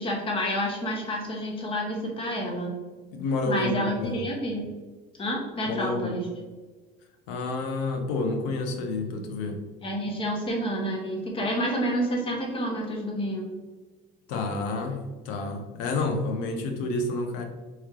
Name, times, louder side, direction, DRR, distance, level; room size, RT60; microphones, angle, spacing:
voice 1, 0.0-2.8 3.5-4.6 5.2-6.2 9.8-13.5, equal, 30° left, 0 dB, 1.2 m, -29 dB
voice 2, 3.1-4.2 5.7-6.1 7.3-9.6 14.3-17.4, left 3 dB, 85° left, 5 dB, 0.8 m, -29 dB
4.3 x 3.2 x 3.7 m, 1.3 s
cardioid pair, 130°, 19 cm